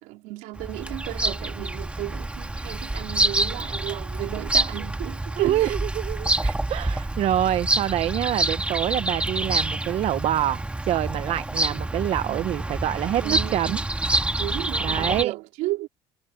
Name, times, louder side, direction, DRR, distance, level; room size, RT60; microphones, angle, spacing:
voice 1, 0.0-5.8 6.4-6.5 11.7-12.7 13.2-13.8 14.4-15.9, right 19 dB, 90° right, 3.4 m, -34 dB
Bird vocalization bird call bird song, 0.6-15.2, right 2 dB, 10° right, 1.8 m, -27 dB
voice 2, 5.4-6.3 6.7-13.8 14.8-15.3, right 12 dB, 55° right, 0.6 m, -26 dB
cardioid pair, 125°, 13 cm